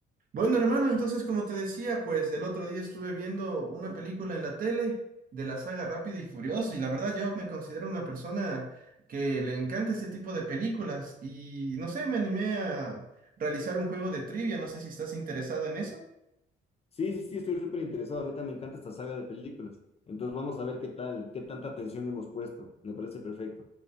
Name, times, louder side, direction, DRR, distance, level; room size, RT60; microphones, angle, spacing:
voice 1, 0.3-5.0 5.3-8.7 9.1-13.0 13.4-16.0, right 3 dB, 45° right, 0 dB, 0.6 m, -32 dB
voice 2, 17.0-23.6, left 4 dB, 30° left, 3 dB, 0.4 m, -36 dB
2.3 x 2.1 x 2.6 m, 0.85 s
cardioid pair, 90°, 20 cm